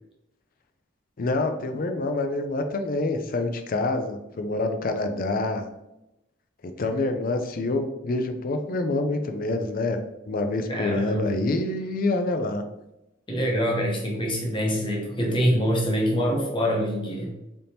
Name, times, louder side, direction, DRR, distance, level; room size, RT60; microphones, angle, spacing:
voice 1, 1.2-5.6 6.6-10.0 10.3-12.6, left 2 dB, 50° left, 7 dB, 0.4 m, -26 dB
voice 2, 10.7-11.3 13.3-17.3, equal, 25° left, -1 dB, 0.9 m, -25 dB
4.0 x 3.5 x 2.8 m, 0.91 s
head